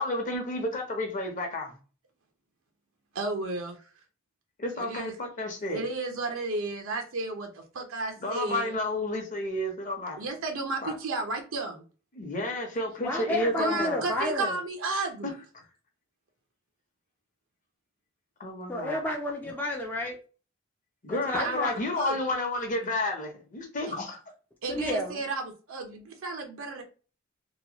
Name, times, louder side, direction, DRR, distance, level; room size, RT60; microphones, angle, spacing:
voice 1, 0.0-1.7 4.6-5.8 8.2-10.3 10.8-10.9 12.1-14.1 15.2-15.3 18.4-19.1 21.0-24.2, left 1 dB, 40° left, 0.8 m, -31 dB
voice 2, 3.1-3.8 4.8-5.2 5.7-8.7 10.2-11.8 13.5-15.3 21.4-22.2 24.6-26.8, right 3 dB, 80° right, 0.7 m, -33 dB
voice 3, 13.0-14.6 18.7-20.2 21.1-21.8 24.7-25.2, left 1 dB, 10° left, 0.4 m, -31 dB
2.9 x 2.2 x 2.8 m
head